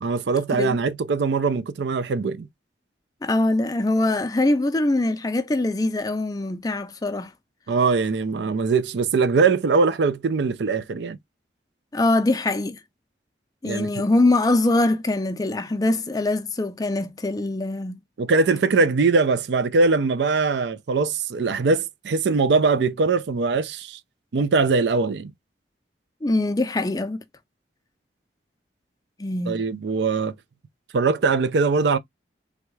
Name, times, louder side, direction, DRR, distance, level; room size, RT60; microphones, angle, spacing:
voice 1, 0.0-2.5 7.7-11.2 13.6-13.9 18.2-24.0 24.3-25.3 29.5-30.3 30.9-32.0, right 4 dB, 75° right, 0.4 m, -21 dB
voice 2, 3.2-7.3 11.9-12.8 13.6-18.0 26.2-27.2 29.2-29.6, left 2 dB, 20° left, 0.4 m, -23 dB
3.5 x 2.3 x 3.1 m
head